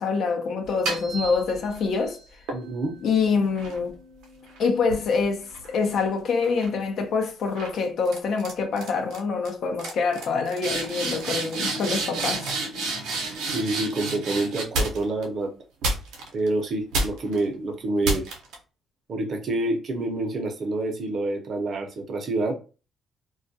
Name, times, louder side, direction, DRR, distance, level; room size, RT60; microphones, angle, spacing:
voice 1, 0.0-2.2 3.0-4.0 4.6-12.5, left 5 dB, 65° left, 0.6 m, -25 dB
sound 1, 0.6-1.9 2.5-6.0 6.4-6.8 7.6-7.8 8.0-8.5 8.8-9.2 9.4-9.5 9.8-15.2 15.8-16.5 16.9-17.4 18.0-18.5, right 2 dB, 85° right, 0.7 m, -31 dB
voice 2, 2.5-2.9 13.5-15.5 16.3-18.3 19.1-22.6, right 2 dB, 50° right, 0.7 m, -27 dB
2.3 x 2.2 x 2.6 m
cardioid pair, 90°, 0 cm